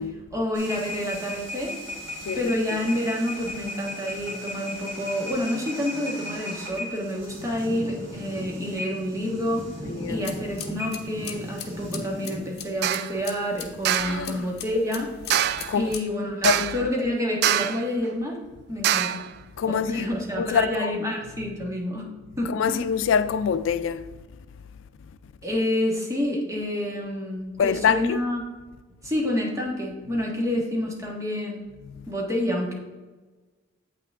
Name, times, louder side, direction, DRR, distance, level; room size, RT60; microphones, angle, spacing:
voice 1, 0.3-1.7 2.3-9.7 10.1-15.1 15.7-18.4 18.7-19.2 19.7-22.0 22.4-22.8 25.4-28.4 29.0-31.7 32.1-32.7, left 1 dB, 15° right, 1.5 m, -28 dB
sound 1, 0.5-12.4, left 1 dB, 75° right, 2.4 m, -36 dB
voice 2, 9.9-10.2 14.0-14.5 15.7-15.9 16.4-16.9 19.6-20.1 20.4-20.9 22.5-24.1 27.6-28.2, left 7 dB, 85° left, 0.4 m, -25 dB
sound 2, 10.1-16.0, left 8 dB, 55° left, 0.9 m, -41 dB
sound 3, 12.8-13.1 13.8-14.2 15.3-15.8 16.4-16.9 17.4-17.9 18.8-19.3, right 10 dB, 60° right, 0.3 m, -24 dB
8.2 x 5.9 x 3.5 m
head